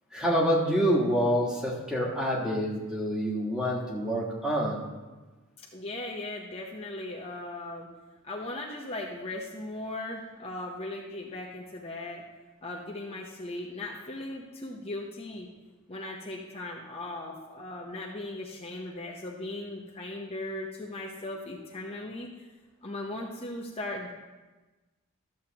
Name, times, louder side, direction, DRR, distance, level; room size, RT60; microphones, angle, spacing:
voice 1, 0.1-4.8, equal, 5° right, -3 dB, 1.4 m, -27 dB
voice 2, 5.6-7.9 8.2-12.2 12.6-15.5 15.9-22.3 22.8-24.1, left 2 dB, 30° left, -2 dB, 0.8 m, -38 dB
13.0 x 7.5 x 2.9 m, 1.2 s
head